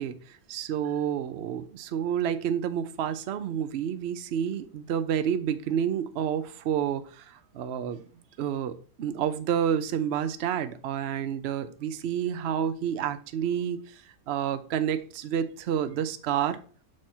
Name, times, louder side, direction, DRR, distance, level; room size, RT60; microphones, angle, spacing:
voice 1, 0.0-8.0 8.4-16.6, right 9 dB, 65° right, 11 dB, 0.6 m, -29 dB
6.2 x 4.4 x 4.5 m, 0.41 s
omnidirectional pair, 1.8 m